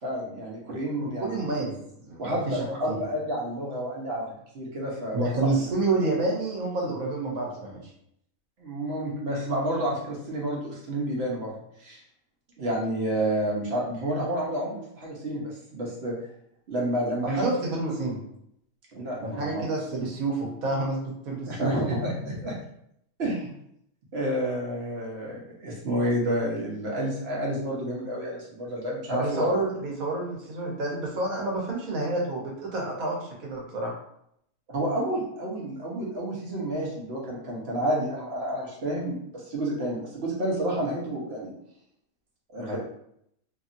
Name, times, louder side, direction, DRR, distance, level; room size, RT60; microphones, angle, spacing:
voice 1, 0.0-1.5 2.2-4.3 4.5-5.3 8.6-12.0 12.6-16.1 16.7-17.5 18.9-19.7 21.5-22.6 23.2-23.5 24.1-29.5 34.7-41.5 42.5-42.8, right 1 dB, 55° right, -3 dB, 1.0 m, -30 dB
voice 2, 1.0-1.8 2.0-2.9 5.1-7.9 17.3-18.2 19.2-22.0 29.1-33.9, right 2 dB, 80° right, -2 dB, 1.3 m, -29 dB
2.9 x 2.6 x 2.5 m, 0.74 s
omnidirectional pair, 1.5 m